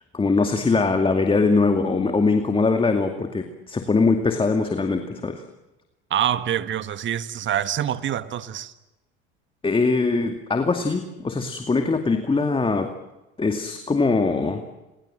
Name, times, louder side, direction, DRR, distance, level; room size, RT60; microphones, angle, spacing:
voice 1, 0.1-5.4 9.6-12.9 13.4-14.6, left 3 dB, 20° left, 2.4 m, -22 dB
voice 2, 6.1-8.7, right 10 dB, 40° right, 1.6 m, -25 dB
29.5 x 22.0 x 7.8 m
hypercardioid pair, 85°, 29 cm